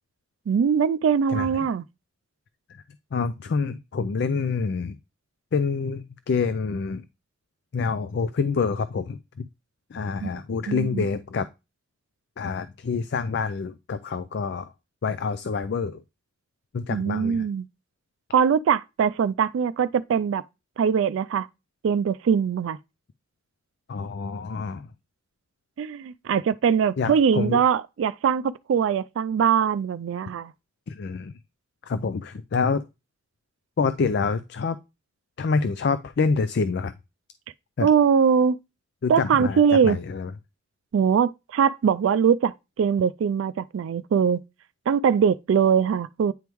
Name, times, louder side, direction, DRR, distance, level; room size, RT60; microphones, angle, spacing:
voice 1, 0.5-1.8 10.2-10.3 10.7-11.1 16.9-17.7 18.3-20.4 20.8-21.5 21.8-22.8 25.8-30.5 37.8-38.6 39.1-40.0 40.9-44.4 44.9-46.3, right 7 dB, 90° right, 0.3 m, -22 dB
voice 2, 1.3-1.7 2.7-2.8 3.1-5.0 5.5-7.1 7.7-9.5 9.9-11.5 12.4-14.7 15.0-16.0 16.7-17.5 23.9-24.9 27.0-27.6 30.9-31.4 31.8-32.8 33.8-34.8 35.4-36.9 37.8-37.9 39.0-40.3, left 5 dB, 60° left, 0.4 m, -27 dB
9.2 x 3.5 x 3.0 m
head